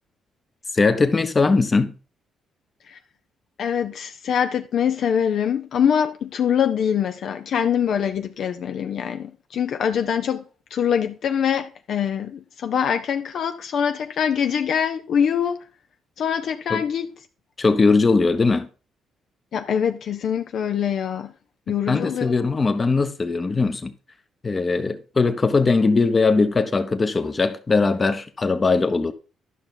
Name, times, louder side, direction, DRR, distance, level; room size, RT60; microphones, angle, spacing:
voice 1, 0.7-1.9 16.7-16.8 17.6-18.7 21.9-23.9 24.4-29.1, left 4 dB, 30° left, 0.9 m, -20 dB
voice 2, 3.6-10.4 10.7-15.6 16.2-17.1 19.5-21.3 21.7-22.3, left 8 dB, 65° left, 0.5 m, -24 dB
11.0 x 5.7 x 3.8 m
cardioid pair, 90°, 0 cm